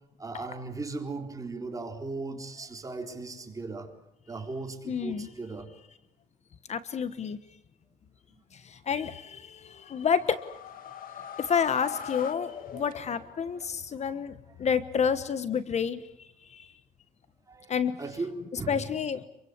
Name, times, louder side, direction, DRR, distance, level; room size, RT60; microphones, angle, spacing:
voice 1, 0.2-3.9 4.3-5.7 12.7-12.8 13.5-13.7 17.5-17.7 18.0-18.8, right 3 dB, 20° right, 4 dB, 4.0 m, -37 dB
voice 2, 4.9-5.3 6.7-7.4 8.5-10.4 11.4-14.3 14.6-16.0 16.5-16.7 17.7-18.0 18.7-19.3, left 7 dB, 40° left, 13 dB, 1.2 m, -29 dB
sound 1, 9.7-13.5, left 8 dB, 55° left, 1.9 m, -41 dB
26.5 x 24.0 x 8.1 m, 0.85 s
cardioid pair, 110°, 17 cm